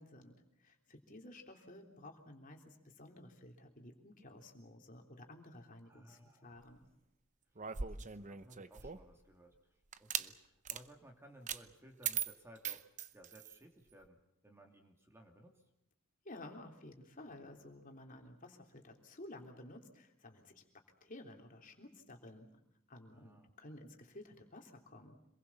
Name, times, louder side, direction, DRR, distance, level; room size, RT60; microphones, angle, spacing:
voice 1, 0.0-6.9 16.2-20.6 21.0-22.5 22.9-25.2, left 1 dB, 40° left, 2 dB, 3.4 m, -54 dB
voice 2, 5.8-6.7 7.9-12.8 13.1-14.2 14.4-15.5 23.1-23.5, right 1 dB, 10° right, 2 dB, 2.8 m, -60 dB
sound 1, 7.5-9.1 9.9-10.3 10.6-10.8 11.5-11.6 12.0-13.6, right 8 dB, 35° right, 0.8 m, -40 dB
27.0 x 21.5 x 7.2 m, 0.81 s
head